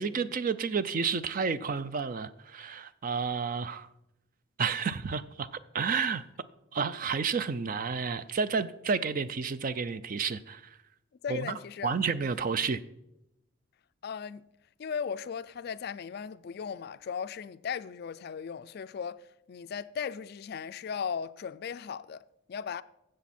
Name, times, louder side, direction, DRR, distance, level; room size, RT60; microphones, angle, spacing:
voice 1, 0.0-3.9 4.6-5.5 5.7-6.2 6.7-10.8 11.3-11.5 11.8-12.8, right 5 dB, 45° right, 0.4 m, -31 dB
voice 2, 11.2-12.0 14.0-14.4 14.8-22.2 22.5-22.8, left 7 dB, 50° left, 0.3 m, -37 dB
13.5 x 7.7 x 4.2 m
head